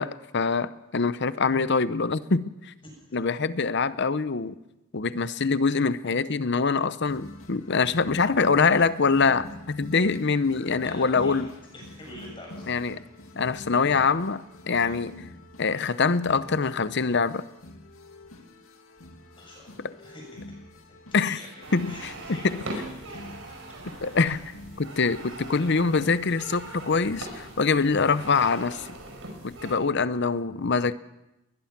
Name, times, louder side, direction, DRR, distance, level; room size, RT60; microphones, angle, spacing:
voice 1, 0.0-2.7 3.1-4.6 4.9-11.5 12.7-13.0 13.4-15.2 15.6-17.4 19.8-19.9 21.1-21.4 21.7-22.6 24.0-24.4 24.8-28.9 29.4-30.9, left 4 dB, 55° left, 14 dB, 0.8 m, -24 dB
voice 2, 2.8-3.2 10.8-12.7 14.8-15.0 19.3-20.3 20.9-21.0 21.2-21.5 21.9-23.5 24.1-24.2, left 1 dB, 25° left, -1 dB, 7.4 m, -45 dB
sound 1, 7.1-26.9, left 1 dB, 80° left, 2.3 m, -47 dB
sound 2, 21.6-29.8, right 1 dB, 70° right, 5.4 m, -41 dB
21.0 x 21.0 x 6.0 m, 0.94 s
head